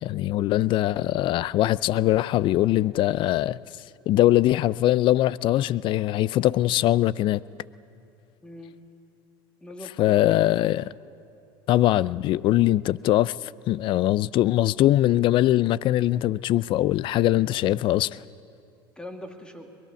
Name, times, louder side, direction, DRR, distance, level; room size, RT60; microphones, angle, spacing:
voice 1, 0.0-3.6 4.1-7.4 10.0-10.8 11.7-18.2, left 14 dB, 45° left, 0.5 m, -22 dB
voice 2, 8.4-8.8 9.6-10.7 19.0-19.7, left 1 dB, 10° left, 2.2 m, -41 dB
23.0 x 21.5 x 7.1 m
supercardioid pair, 115°, 12 cm